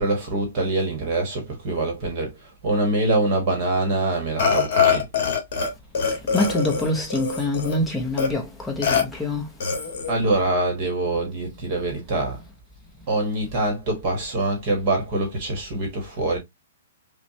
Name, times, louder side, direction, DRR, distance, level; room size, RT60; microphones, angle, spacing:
voice 1, 0.0-5.1 10.1-12.4 13.1-16.4, right 2 dB, 25° right, 1.1 m, -24 dB
Burping eructation, 4.4-5.7 5.9-7.8 8.2-8.3 8.8-9.0 9.6-10.1, left 6 dB, 40° left, 1.5 m, -23 dB
voice 2, 6.1-9.5, left 2 dB, 5° left, 0.7 m, -25 dB
5.8 x 2.1 x 2.7 m
hypercardioid pair, 180°, 0 cm